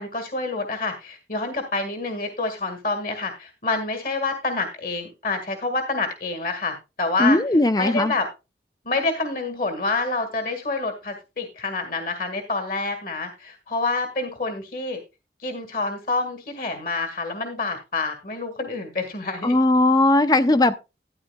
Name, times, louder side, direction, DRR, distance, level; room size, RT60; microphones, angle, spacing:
voice 1, 0.0-7.4 7.8-8.3 8.8-15.0 15.4-19.6, left 3 dB, 50° left, 1.8 m, -27 dB
voice 2, 7.2-8.1 19.4-20.7, left 2 dB, 20° left, 0.5 m, -18 dB
13.0 x 10.0 x 2.3 m
head